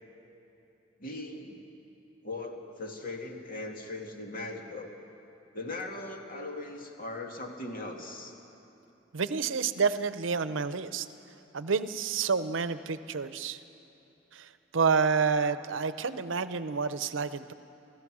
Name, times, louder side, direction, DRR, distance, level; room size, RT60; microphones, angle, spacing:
voice 1, 1.0-1.7 2.2-4.9 5.5-8.3, left 2 dB, 50° left, 2 dB, 2.2 m, -39 dB
voice 2, 9.1-11.1 11.5-13.6 14.3-14.5 14.7-17.5, right 5 dB, 85° right, 13 dB, 0.7 m, -29 dB
29.0 x 16.0 x 6.2 m, 3.0 s
head